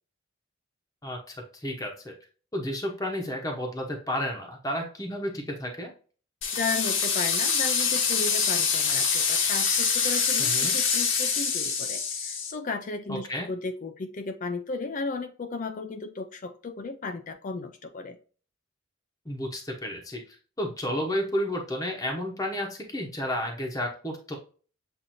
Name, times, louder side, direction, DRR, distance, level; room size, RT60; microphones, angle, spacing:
voice 1, 1.0-2.1 2.5-5.9 10.4-10.7 13.1-13.5 19.3-24.4, equal, 15° left, 1 dB, 0.9 m, -32 dB
sound 1, 6.4-12.5, left 5 dB, 65° left, 1.0 m, -25 dB
voice 2, 6.5-18.2, left 3 dB, 40° left, 8 dB, 0.4 m, -35 dB
7.4 x 2.6 x 2.6 m, 0.39 s
head